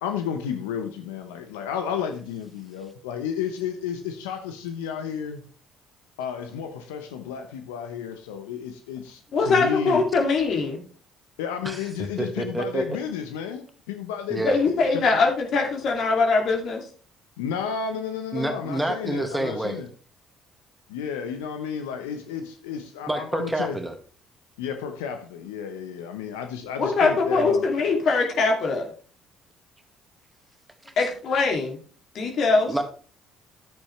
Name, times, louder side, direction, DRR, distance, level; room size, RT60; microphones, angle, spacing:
voice 1, 0.0-5.4 6.2-9.2 9.5-10.0 11.4-14.6 14.9-15.0 17.4-19.9 20.9-23.8 24.6-27.6, left 7 dB, 80° left, 0.9 m, -32 dB
voice 2, 9.3-10.8 14.4-16.9 26.8-28.9 31.0-31.8 32.1-32.7, left 4 dB, 60° left, 2.6 m, -22 dB
voice 3, 11.6-12.8 14.3-14.6 18.3-19.8 23.1-23.9 30.9-31.0 32.7-32.8, right 1 dB, 10° right, 1.9 m, -28 dB
10.5 x 8.5 x 3.2 m
hypercardioid pair, 55°, 0 cm